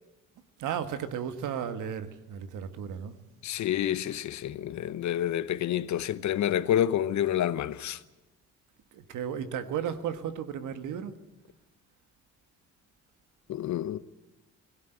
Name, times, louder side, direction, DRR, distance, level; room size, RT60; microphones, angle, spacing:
voice 1, 0.6-3.1 8.9-11.2, right 8 dB, 80° right, 1.4 m, -34 dB
voice 2, 3.4-8.0 13.5-14.0, left 11 dB, 70° left, 0.9 m, -28 dB
18.0 x 16.0 x 9.1 m
cardioid pair, 90°, 30 cm